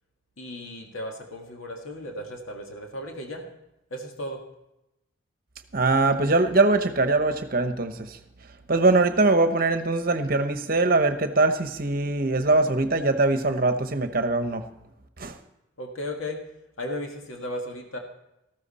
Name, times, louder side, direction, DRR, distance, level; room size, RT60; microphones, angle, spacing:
voice 1, 0.4-3.4 3.9-4.4 15.8-16.4 16.8-18.0, left 1 dB, 85° left, 2 dB, 1.8 m, -35 dB
voice 2, 5.7-8.2 8.7-14.7 15.2-15.3, right 2 dB, 45° right, 9 dB, 0.9 m, -22 dB
14.0 x 13.0 x 4.2 m, 0.90 s
head